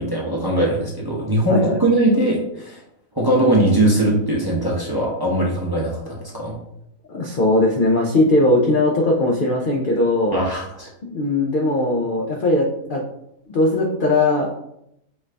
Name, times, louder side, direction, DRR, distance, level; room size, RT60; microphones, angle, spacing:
voice 1, 0.0-2.8 3.1-6.6 10.3-10.9, right 1 dB, 25° right, -4 dB, 0.5 m, -20 dB
voice 2, 7.1-10.4 11.0-13.0 13.5-14.5, left 2 dB, 80° left, -1 dB, 0.4 m, -19 dB
5.3 x 2.5 x 3.3 m, 0.78 s
omnidirectional pair, 1.6 m